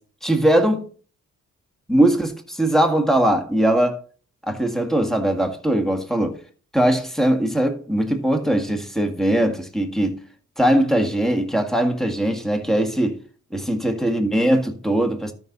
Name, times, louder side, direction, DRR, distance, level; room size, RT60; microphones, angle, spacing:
voice 1, 0.2-0.9 1.9-4.0 4.4-6.4 6.7-10.2 10.6-13.2 13.5-15.3, right 1 dB, ahead, 1.9 m, -20 dB
12.5 x 6.0 x 4.1 m
cardioid pair, 95°, 30 cm